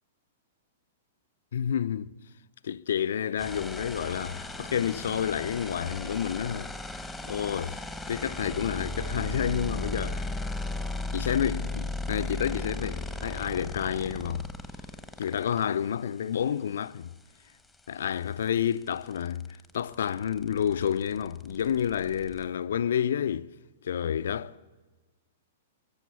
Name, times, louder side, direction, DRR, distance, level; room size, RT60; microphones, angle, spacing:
voice 1, 1.5-2.1 2.6-10.3 11.1-14.5 15.2-17.1 17.9-23.5 23.8-24.5, left 9 dB, 70° left, 0.5 m, -30 dB
sound 1, 3.4-15.6 17.7-17.8 18.1-22.5, left 1 dB, 5° left, 1.3 m, -36 dB
23.0 x 7.7 x 8.3 m
hypercardioid pair, 115°, 0 cm